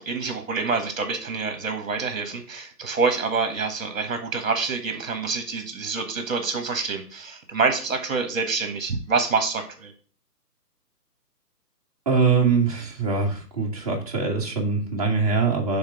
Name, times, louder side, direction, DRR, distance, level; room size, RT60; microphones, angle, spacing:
voice 1, 0.0-9.9, right 4 dB, 55° right, 7 dB, 1.5 m, -26 dB
voice 2, 12.1-15.8, right 4 dB, 25° right, -2 dB, 1.2 m, -23 dB
6.4 x 3.6 x 5.9 m, 0.39 s
hypercardioid pair, 170°, 48 cm